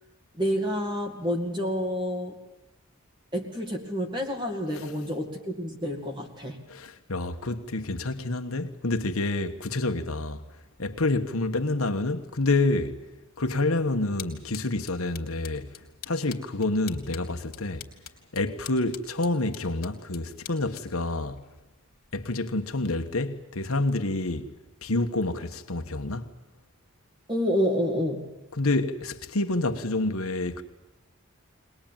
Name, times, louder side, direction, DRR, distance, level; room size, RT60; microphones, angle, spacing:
voice 1, 0.4-2.4 3.3-6.6 27.3-28.2, equal, 20° right, 2.3 m, -28 dB
voice 2, 6.7-10.4 10.8-13.0 13.4-15.8 16.1-17.9 18.3-21.4 22.1-24.5 24.8-26.3 28.6-30.6, left 2 dB, 85° left, 1.4 m, -28 dB
sound 1, 14.2-22.2, left 10 dB, 45° left, 2.7 m, -47 dB
22.0 x 20.0 x 9.0 m
head